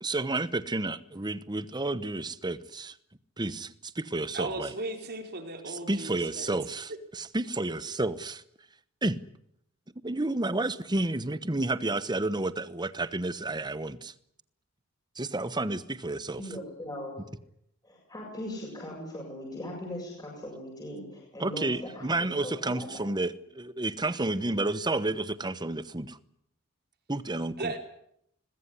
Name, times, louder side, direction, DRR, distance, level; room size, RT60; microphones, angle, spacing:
voice 1, 0.0-2.9 3.4-4.7 5.7-8.4 9.0-9.2 10.0-14.1 15.2-16.4 21.4-26.2 27.1-27.7, right 2 dB, 20° right, 1.0 m, -31 dB
voice 2, 4.3-6.5 27.6-27.8, right 2 dB, 50° right, 4.5 m, -36 dB
voice 3, 16.3-17.2 17.8-21.7 22.0-22.9, left 1 dB, 20° left, 7.4 m, -39 dB
22.0 x 20.5 x 9.9 m
head